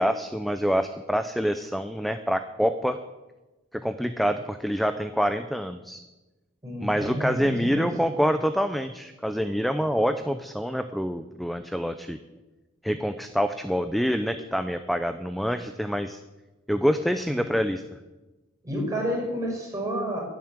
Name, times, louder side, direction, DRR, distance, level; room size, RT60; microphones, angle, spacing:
voice 1, 0.0-3.0 3.7-6.0 6.8-12.2 12.8-16.2 16.7-17.8, equal, ahead, 9 dB, 0.6 m, -26 dB
voice 2, 6.6-7.9 17.3-17.4 18.6-20.2, equal, 15° right, -3 dB, 5.9 m, -30 dB
11.0 x 10.5 x 8.8 m, 1.1 s
head